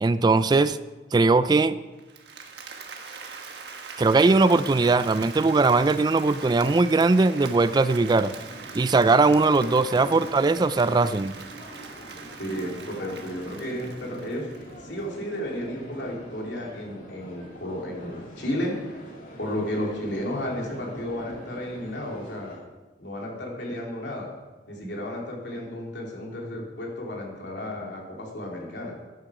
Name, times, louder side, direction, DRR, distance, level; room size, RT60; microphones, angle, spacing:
voice 1, 0.0-0.8 1.1-1.8 4.0-8.3 8.7-11.4, right 3 dB, 25° right, 15 dB, 0.3 m, -20 dB
Applause, 2.0-15.0, right 5 dB, 65° right, 1.4 m, -42 dB
sound 1, 8.1-22.6, right 1 dB, 50° left, 2.9 m, -45 dB
voice 2, 12.4-14.5 14.8-19.0 19.4-22.6 23.0-24.3 24.7-29.0, left 1 dB, 80° left, -1 dB, 3.0 m, -33 dB
12.5 x 9.9 x 4.9 m, 1.2 s
head